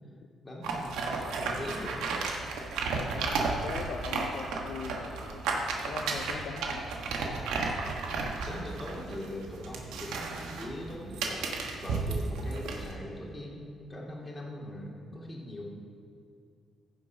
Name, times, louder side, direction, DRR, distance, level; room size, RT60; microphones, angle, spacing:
voice 1, 0.4-2.2 8.1-15.6, left 1 dB, 20° left, -2 dB, 2.3 m, -41 dB
sound 1, 0.6-12.9, right 4 dB, 90° right, 1.3 m, -33 dB
voice 2, 3.1-6.9, left 6 dB, 70° left, 6 dB, 0.5 m, -41 dB
15.0 x 5.2 x 5.6 m, 2.4 s
cardioid pair, 90°, 0 cm